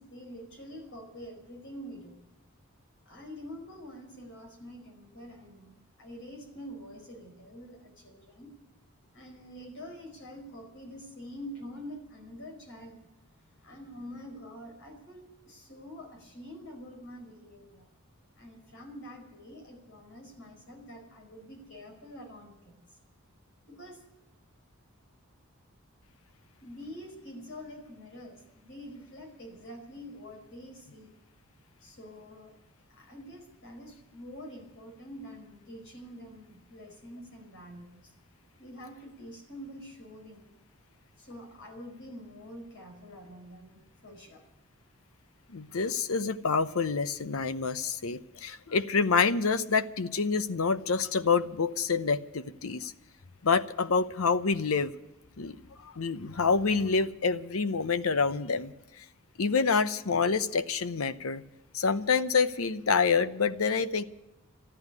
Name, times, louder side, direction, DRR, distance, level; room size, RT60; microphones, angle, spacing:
voice 1, 0.0-2.2 3.0-8.5 9.1-13.0 13.5-17.9 18.3-22.7 23.7-24.0 26.6-31.1 31.8-32.5 32.9-38.1 38.6-40.6 41.2-44.4, equal, 60° left, 3 dB, 4.9 m, -46 dB
voice 2, 45.5-52.9 53.4-54.9 55.4-59.0 59.4-61.4 61.7-64.0, left 5 dB, 80° left, 13 dB, 0.8 m, -27 dB
14.0 x 11.0 x 9.6 m, 0.96 s
head